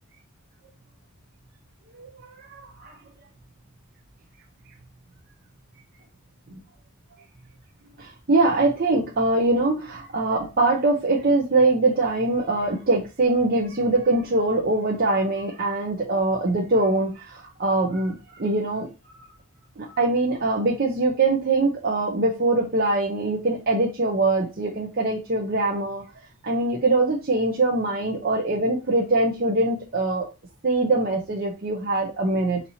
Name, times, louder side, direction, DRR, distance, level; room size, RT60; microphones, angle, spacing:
voice 1, 1.9-3.0 6.5-6.6 8.0-18.9 19.1-19.3 19.8-26.0 26.4-30.3 30.6-32.6, right 2 dB, 45° right, -1 dB, 0.7 m, -23 dB
4.3 x 2.8 x 4.2 m, 0.28 s
head